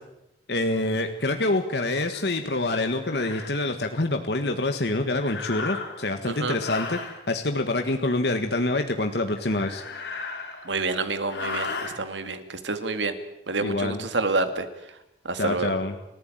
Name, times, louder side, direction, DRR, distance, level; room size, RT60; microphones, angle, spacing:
voice 1, 0.5-7.0 7.3-9.8 13.6-14.1 15.4-15.9, left 2 dB, 65° left, 6 dB, 1.7 m, -26 dB
sound 1, 2.1-2.3 3.0-3.5 5.2-6.1 6.6-7.2 9.4-10.8 11.2-11.9, left 4 dB, 85° left, 5.0 m, -35 dB
voice 2, 6.3-6.6 10.6-13.1 13.5-14.7 15.2-15.8, right 3 dB, 90° right, 9 dB, 2.4 m, -28 dB
29.5 x 14.5 x 9.2 m, 0.89 s
head